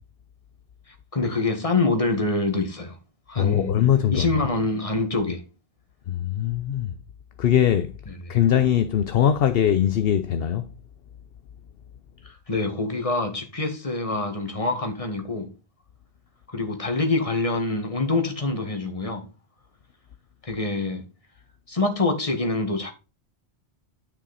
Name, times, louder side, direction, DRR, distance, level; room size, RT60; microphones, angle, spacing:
voice 1, 0.9-3.0 3.3-3.7 4.1-5.4 8.1-8.2 12.2-15.5 16.5-19.3 20.4-21.0 21.7-22.9, left 3 dB, 30° left, 1.9 m, -25 dB
voice 2, 3.4-4.3 6.1-6.9 7.4-7.9 8.3-10.7, left 10 dB, 65° left, 0.8 m, -21 dB
9.7 x 5.7 x 4.1 m
omnidirectional pair, 1.1 m